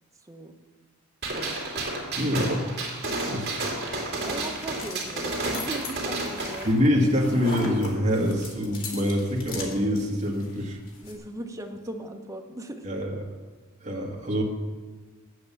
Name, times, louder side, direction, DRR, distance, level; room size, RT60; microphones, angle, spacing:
voice 1, 0.2-0.6 1.3-1.6 4.2-6.7 11.0-12.9, right 1 dB, 15° right, 3 dB, 0.9 m, -38 dB
Gunshot gunfire, 1.2-6.7, right 2 dB, 50° right, 2.3 m, -31 dB
voice 2, 2.2-2.7 3.3-3.7 6.6-10.8 12.8-13.2 13.8-14.4, equal, 35° right, -2 dB, 1.6 m, -25 dB
sound 1, 3.7-11.2, left 3 dB, 65° left, 2.5 m, -41 dB
8.6 x 7.9 x 7.0 m, 1.3 s
head